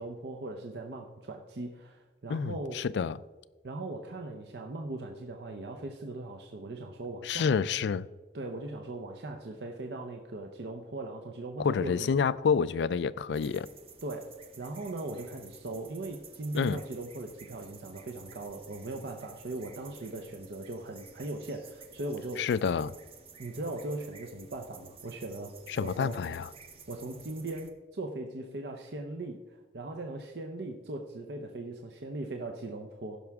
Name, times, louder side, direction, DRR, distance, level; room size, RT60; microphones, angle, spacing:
voice 1, 0.0-2.8 3.6-7.5 8.3-12.1 14.0-14.3 14.6-22.5 23.4-25.5 25.8-26.2 26.9-29.4 29.7-33.2, right 2 dB, 70° right, 0.7 m, -39 dB
voice 2, 2.3-3.2 7.2-8.1 11.6-13.7 16.5-16.8 22.4-22.9 25.7-26.5, left 6 dB, 80° left, 0.3 m, -28 dB
sound 1, 13.3-27.7, right 5 dB, 30° right, 0.8 m, -53 dB
15.5 x 5.9 x 3.6 m
head